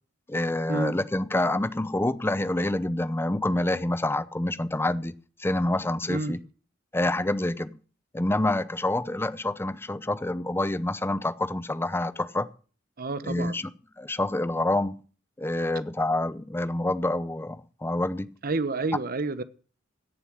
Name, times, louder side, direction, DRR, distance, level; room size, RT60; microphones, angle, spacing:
voice 1, 0.3-6.4 6.9-7.8 8.1-12.5 13.2-13.7 14.0-15.0 15.4-18.3, left 1 dB, 10° left, 0.6 m, -27 dB
voice 2, 13.0-13.6 18.4-19.4, right 3 dB, 50° right, 1.0 m, -29 dB
17.0 x 7.1 x 6.2 m
head